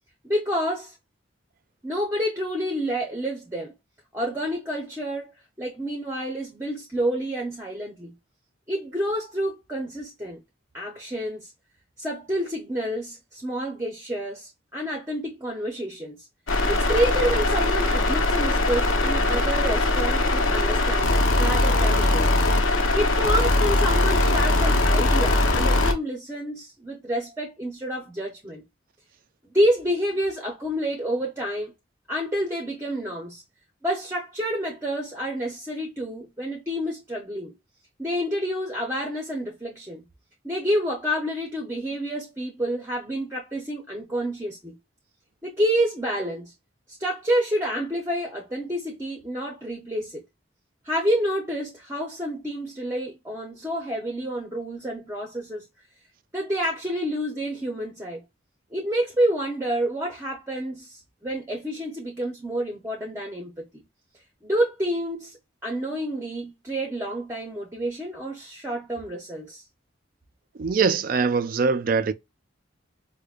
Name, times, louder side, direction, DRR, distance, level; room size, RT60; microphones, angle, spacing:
voice 1, 0.2-1.0 1.8-3.7 4.1-5.3 5.6-8.1 8.7-10.4 10.7-11.5 12.0-16.3 16.7-22.3 22.9-28.6 29.5-31.7 32.1-33.4 33.8-37.5 38.0-40.0 40.4-44.8 45.4-46.5 46.9-50.2 50.8-55.7 56.3-58.2 58.7-63.8 64.4-69.6, equal, 15° right, 0.7 m, -28 dB
sound 1, 16.5-25.9, left 2 dB, 85° left, 0.8 m, -21 dB
voice 2, 70.6-72.1, right 5 dB, 45° right, 0.3 m, -22 dB
4.9 x 2.1 x 2.4 m
head